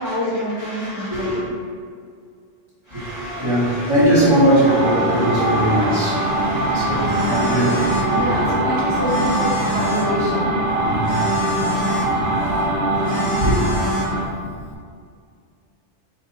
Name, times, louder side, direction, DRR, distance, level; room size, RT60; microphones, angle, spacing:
voice 1, 0.0-1.5 8.1-10.5, equal, 20° left, -10 dB, 0.7 m, -26 dB
voice 2, 0.6-1.4 2.9-8.9 10.8-11.2 12.3-12.6 13.0-13.1 13.4-13.7, right 1 dB, 25° right, -10 dB, 1.3 m, -21 dB
sound 1, 4.6-14.3, right 1 dB, 60° right, 0.8 m, -22 dB
Telephone, 6.2-14.8, left 1 dB, 70° left, 0.8 m, -31 dB
4.1 x 2.6 x 4.0 m, 2.2 s
omnidirectional pair, 1.2 m